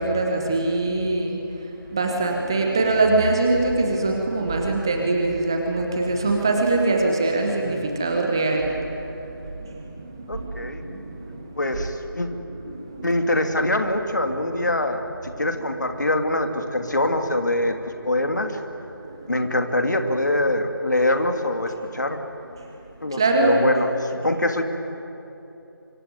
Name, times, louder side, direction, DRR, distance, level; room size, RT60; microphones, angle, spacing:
voice 1, 0.0-11.8 12.3-13.1 15.6-15.7 19.0-19.2 23.1-23.6, right 2 dB, 10° right, 2 dB, 1.1 m, -24 dB
voice 2, 10.3-10.8 11.6-12.3 13.0-17.8 18.0-18.6 19.3-22.2 23.0-24.6, left 1 dB, 50° left, 6 dB, 2.6 m, -24 dB
25.0 x 24.5 x 9.5 m, 3.0 s
figure-of-eight pair, 165°, 12 cm